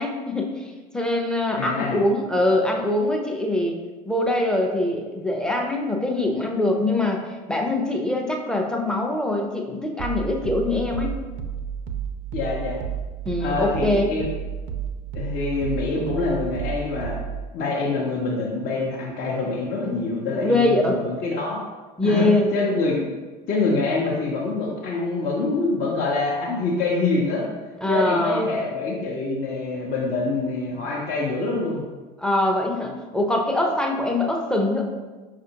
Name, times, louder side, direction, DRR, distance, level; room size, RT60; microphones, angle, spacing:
voice 1, 0.0-3.8 4.1-7.2 7.5-11.1 13.3-14.0 20.4-21.0 22.0-22.5 27.8-28.5 32.2-34.8, left 1 dB, 5° left, 1 dB, 0.6 m, -23 dB
voice 2, 1.6-2.0 12.3-12.8 13.4-14.3 15.1-17.2 17.5-21.6 22.0-22.3 22.5-23.0 23.5-27.5 27.9-31.9, left 3 dB, 45° left, -3 dB, 0.7 m, -25 dB
sound 1, 10.0-17.5, right 8 dB, 50° right, 0.5 m, -31 dB
5.4 x 2.4 x 2.8 m, 1.3 s
figure-of-eight pair, 70°, 21 cm